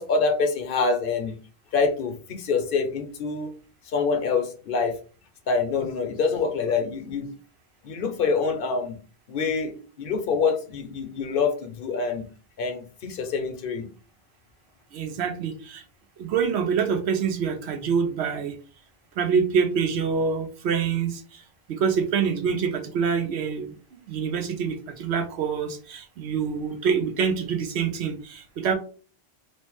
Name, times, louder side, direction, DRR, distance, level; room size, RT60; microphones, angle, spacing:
voice 1, 0.0-1.3 1.7-3.5 3.9-4.9 5.5-7.3 7.8-9.0 9.3-12.2 12.6-13.9, left 4 dB, 60° left, 5 dB, 0.8 m, -26 dB
voice 2, 14.9-15.8 16.2-18.5 19.2-21.1 21.8-23.7 24.1-28.7, right 6 dB, 85° right, 6 dB, 0.9 m, -25 dB
3.1 x 2.0 x 3.0 m, 0.38 s
omnidirectional pair, 1.1 m